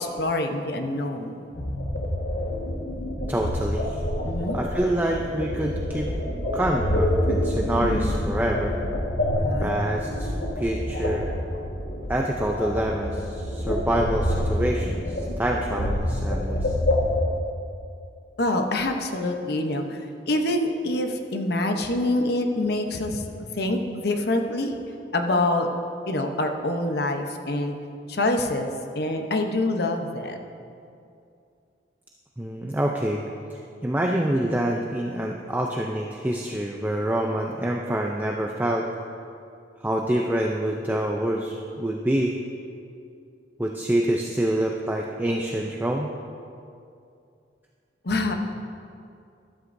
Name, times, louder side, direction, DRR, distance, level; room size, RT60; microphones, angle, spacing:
voice 1, 0.0-1.3 4.2-4.6 9.4-9.7 18.4-20.0 20.3-23.2 23.6-24.8 25.1-25.7 26.1-27.8 28.1-30.4 48.0-48.3, left 2 dB, 60° left, 4 dB, 0.9 m, -25 dB
sound 1, 1.5-17.3, left 1 dB, 85° left, 1.5 m, -27 dB
voice 2, 3.3-4.0 4.5-6.1 6.5-8.8 9.6-11.3 12.1-16.7 32.4-33.2 33.5-38.9 39.8-42.3 43.6-46.1, right 1 dB, 10° right, 0 dB, 0.5 m, -26 dB
13.0 x 13.0 x 2.6 m, 2.5 s
head